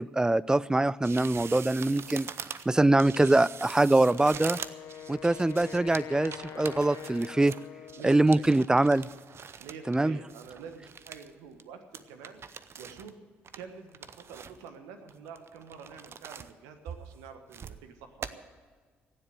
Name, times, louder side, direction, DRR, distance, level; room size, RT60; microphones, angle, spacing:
voice 1, 0.0-2.3 2.7-4.6 5.1-7.5 8.0-9.1 9.9-10.2, right 2 dB, 10° right, 22 dB, 0.4 m, -23 dB
sound 1, 1.0-10.0 10.3-11.3 11.6-11.7 11.9-13.1 13.4-14.7 15.1-16.5 16.9-17.8 18.2-18.3, right 7 dB, 50° right, 0.7 m, -43 dB
Wind instrument woodwind instrument, 4.1-8.3, left 9 dB, 60° left, 0.6 m, -44 dB
voice 2, 8.0-8.5 9.6-12.4 12.8-13.2 13.5-18.4, right 6 dB, 80° right, 7 dB, 1.3 m, -47 dB
16.0 x 7.9 x 9.2 m, 1.6 s
hypercardioid pair, 50°, 6 cm